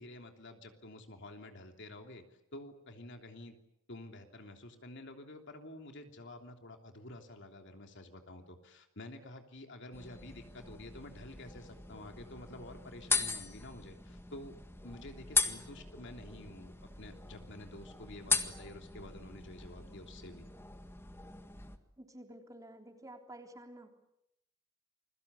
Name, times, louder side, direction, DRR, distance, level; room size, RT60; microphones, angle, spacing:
voice 1, 0.0-2.2 2.5-3.5 3.9-14.6 14.8-20.5, left 1 dB, 60° left, 4 dB, 3.2 m, -49 dB
sound 1, 9.9-21.8, left 4 dB, 10° left, 1.8 m, -39 dB
voice 2, 22.0-23.9, right 1 dB, 15° right, 3 dB, 3.5 m, -51 dB
29.0 x 22.5 x 8.3 m, 0.80 s
head